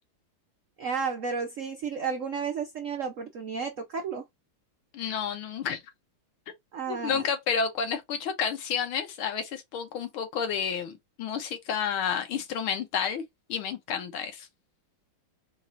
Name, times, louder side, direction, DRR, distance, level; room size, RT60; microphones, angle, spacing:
voice 1, 0.8-4.2 6.7-7.3, right 5 dB, 85° right, 0.6 m, -32 dB
voice 2, 4.9-5.8 6.9-13.2 13.5-14.5, left 7 dB, 80° left, 1.9 m, -30 dB
4.6 x 2.5 x 4.2 m
omnidirectional pair, 2.3 m